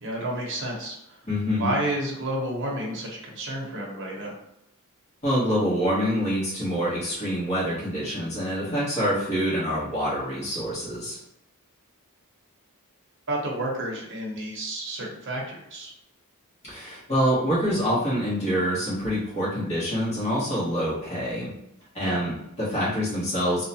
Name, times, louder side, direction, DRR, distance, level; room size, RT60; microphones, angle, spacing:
voice 1, 0.0-1.2 1.6-4.3 13.3-15.9 22.0-22.2, right 1 dB, 55° right, -2 dB, 0.8 m, -30 dB
voice 2, 1.2-1.7 5.2-11.2 16.6-21.5 21.9-23.7, equal, 30° left, -9 dB, 1.1 m, -26 dB
2.7 x 2.1 x 2.7 m, 0.82 s
head